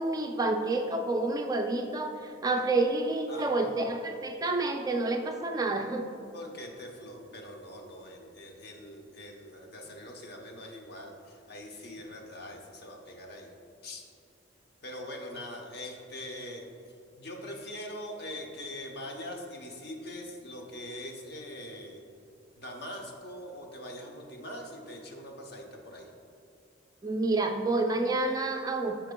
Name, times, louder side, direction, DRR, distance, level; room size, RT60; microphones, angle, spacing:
voice 1, 0.0-6.1 27.0-29.1, right 2 dB, 20° right, 4 dB, 0.3 m, -29 dB
voice 2, 3.3-4.0 6.3-13.5 13.8-14.0 14.8-16.6 17.1-22.0 22.6-26.1, left 1 dB, 55° left, 1 dB, 0.9 m, -42 dB
12.0 x 4.4 x 2.2 m, 2.6 s
head